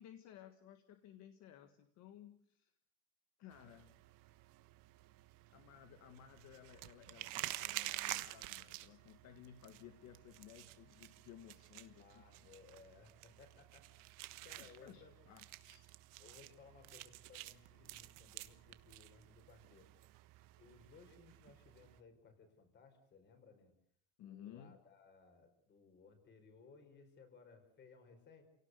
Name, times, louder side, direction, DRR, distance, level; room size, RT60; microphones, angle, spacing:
voice 1, 0.0-2.7 3.4-4.0 5.5-12.5 14.3-15.9 24.2-24.8, left 10 dB, 55° left, 8 dB, 1.7 m, -58 dB
sound 1, 3.5-22.0, right 18 dB, 70° right, 1.4 m, -50 dB
voice 2, 11.9-15.1 16.2-19.9 20.6-23.7 24.2-28.4, left 5 dB, 30° left, 7 dB, 4.9 m, -62 dB
28.5 x 18.0 x 8.2 m, 0.67 s
cardioid pair, 175°, 33 cm